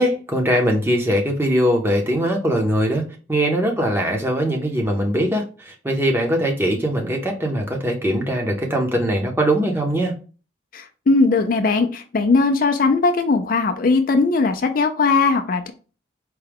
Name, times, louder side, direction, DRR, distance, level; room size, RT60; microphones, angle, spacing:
voice 1, 0.0-10.1, equal, 10° right, 2 dB, 0.7 m, -21 dB
voice 2, 10.7-15.7, left 3 dB, 45° left, 6 dB, 0.4 m, -19 dB
4.6 x 2.2 x 3.4 m, 0.36 s
head